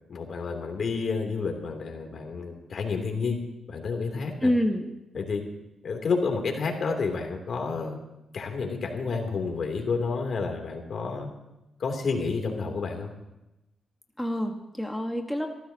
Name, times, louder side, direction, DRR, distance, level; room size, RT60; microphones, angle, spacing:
voice 1, 0.1-3.4 3.7-4.5 5.1-5.4 5.8-8.0 8.3-11.3 11.8-13.1, left 4 dB, 60° left, 3 dB, 3.0 m, -30 dB
voice 2, 4.4-4.9 14.2-15.5, equal, 5° left, 3 dB, 1.5 m, -27 dB
26.0 x 14.5 x 2.9 m, 0.94 s
cardioid pair, 65°, 0 cm